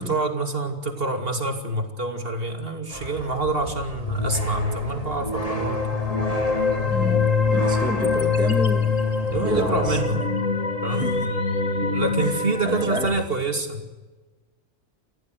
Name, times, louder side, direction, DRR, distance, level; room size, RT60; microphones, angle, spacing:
voice 1, 0.0-5.9 9.2-10.3 10.8-11.0 11.8-13.8, right 3 dB, 40° right, 2.8 m, -27 dB
Water Through Metal Pipe, 2.9-10.0, equal, 25° left, 2.7 m, -31 dB
sound 1, 5.3-13.2, left 5 dB, 65° left, 2.0 m, -24 dB
voice 2, 6.9-9.0 9.4-10.3 10.9-11.3 12.2-13.2, equal, 5° right, 1.3 m, -31 dB
29.0 x 15.0 x 8.0 m
omnidirectional pair, 1.5 m